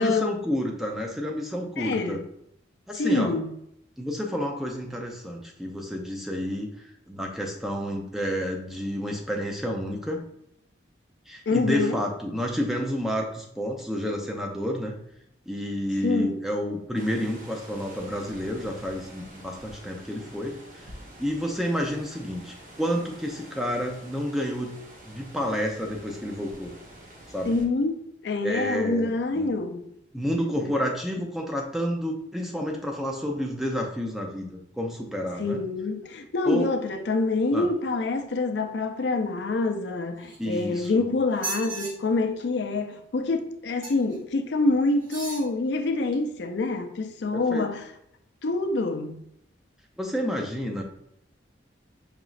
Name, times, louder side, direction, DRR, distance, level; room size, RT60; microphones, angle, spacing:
voice 1, 0.0-2.2 2.9-3.3 4.0-6.7 7.1-10.2 11.3-15.0 15.5-20.9 21.2-24.8 25.1-26.7 27.3-27.6 28.4-29.5 30.1-35.6 36.5-36.7 37.5-37.7 40.4-41.1 47.3-47.7 50.0-50.8, equal, ahead, 0.5 m, -30 dB
voice 2, 1.8-2.2 3.0-3.5 11.5-12.0 16.0-16.4 27.4-29.9 30.6-30.7 35.4-47.8 48.4-49.2, left 3 dB, 65° left, 0.4 m, -26 dB
sound 1, 16.9-27.7, right 1 dB, 45° right, 0.8 m, -47 dB
sound 2, 40.2-40.9 41.3-41.9 43.8-44.2 45.0-45.5 46.1-46.2, right 3 dB, 90° right, 1.0 m, -36 dB
5.0 x 3.0 x 2.4 m
head